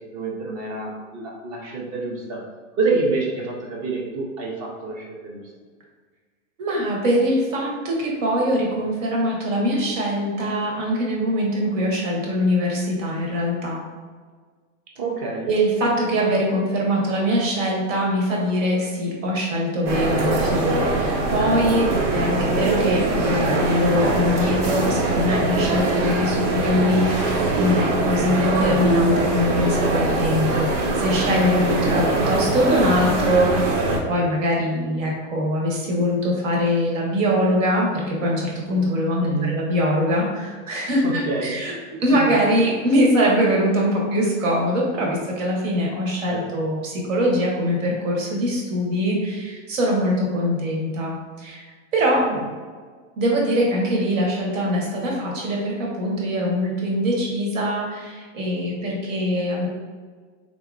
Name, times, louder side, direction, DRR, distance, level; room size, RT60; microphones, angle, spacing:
voice 1, 0.1-2.4 2.8-5.4 15.0-15.5 21.8-22.0 31.6-32.1 39.2-39.6 41.0-41.6 42.1-42.2 46.3-46.5 52.2-52.4, right 3 dB, 25° right, -1 dB, 0.4 m, -27 dB
voice 2, 6.6-13.8 15.5-33.7 34.1-41.7 42.0-51.6 51.9-52.3 53.2-59.7, equal, 90° right, -2 dB, 1.3 m, -22 dB
sound 1, 19.9-34.0, right 2 dB, 70° right, 0.9 m, -22 dB
4.2 x 2.9 x 2.4 m, 1.5 s
supercardioid pair, 155°, 38 cm